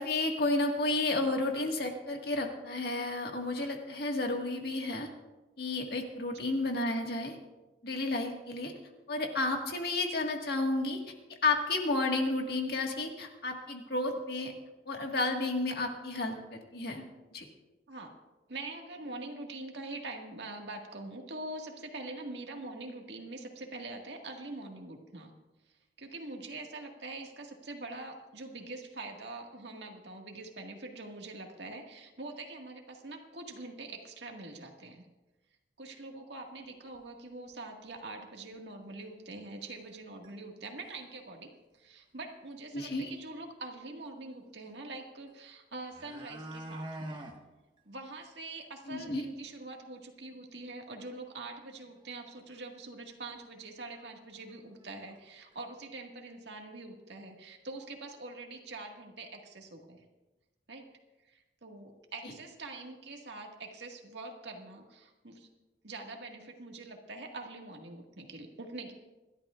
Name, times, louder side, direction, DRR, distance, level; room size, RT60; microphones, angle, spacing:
voice 1, 0.0-5.1 5.6-7.3 7.8-8.7 9.1-11.0 11.4-14.5 14.9-17.0 17.3-17.5 42.7-43.1 48.9-49.3, left 2 dB, 55° left, 2 dB, 1.8 m, -32 dB
voice 2, 18.5-25.3 26.0-35.0 35.8-47.2 47.9-60.0 60.7-60.9 61.2-65.5 65.8-68.9, right 2 dB, 70° right, 2 dB, 1.9 m, -44 dB
sound 1, 36.9-37.0 37.5-37.6 38.0-38.1 39.0-39.1 39.7-40.0 40.2-40.3 40.7-41.1 42.5-42.6 42.9-43.0 45.3-45.4 45.7-47.4 47.8-47.9 48.2-48.3 48.7-48.8 49.1-49.2 52.0-52.1 52.5-52.6 53.4-53.5 53.9-54.1 54.4-55.2 55.5-55.6, right 1 dB, 25° right, 1.6 m, -45 dB
27.0 x 12.0 x 2.5 m, 1.1 s
head